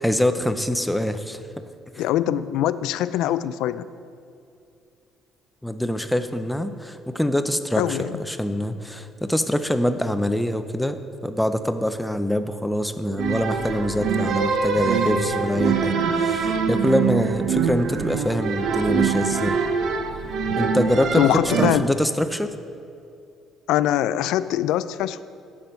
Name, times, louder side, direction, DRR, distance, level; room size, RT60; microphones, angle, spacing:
voice 1, 0.0-1.4 5.6-19.6 20.6-22.5, left 1 dB, ahead, 9 dB, 0.5 m, -24 dB
voice 2, 2.0-3.8 7.8-8.2 21.1-21.9 23.7-25.2, left 12 dB, 85° left, 15 dB, 0.4 m, -23 dB
sound 1, 13.2-21.7, right 5 dB, 65° right, 0.8 m, -24 dB
10.5 x 7.7 x 5.7 m, 2.5 s
cardioid pair, 145°, 0 cm